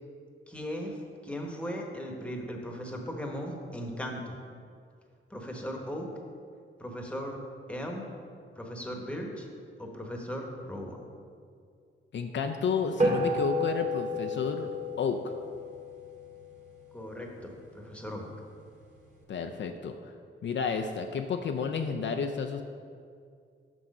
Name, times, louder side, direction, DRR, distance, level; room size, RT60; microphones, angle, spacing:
voice 1, 0.5-4.4 5.3-6.1 6.8-7.4 7.7-8.1 8.5-9.5 9.8-11.0 16.9-18.3, equal, 5° left, 1 dB, 1.1 m, -37 dB
voice 2, 12.1-14.7 15.0-15.3 19.3-19.9 20.4-22.6, left 5 dB, 60° left, 5 dB, 0.5 m, -31 dB
sound 1, 13.0-17.6, left 1 dB, 35° right, 1.6 m, -32 dB
6.1 x 5.7 x 5.3 m, 2.3 s
cardioid pair, 100°, 21 cm